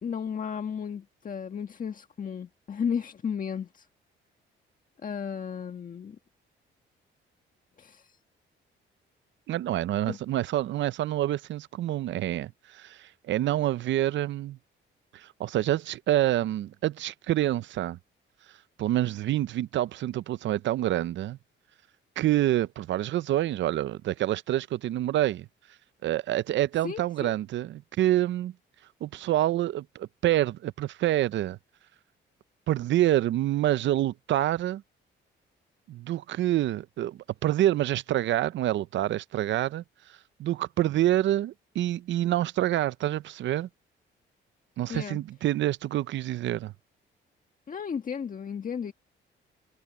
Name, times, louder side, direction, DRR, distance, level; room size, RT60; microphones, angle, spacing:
voice 1, 0.0-3.9 5.0-6.2 7.8-8.2 10.1-10.2 26.8-27.3 44.9-45.2 47.7-48.9, left 7 dB, 45° left, 1.6 m, -34 dB
voice 2, 9.5-14.6 15.1-18.0 18.8-21.4 22.2-25.5 26.0-28.5 29.0-31.6 32.7-34.8 35.9-43.7 44.8-46.7, right 13 dB, 70° right, 0.6 m, -27 dB
cardioid pair, 90°, 20 cm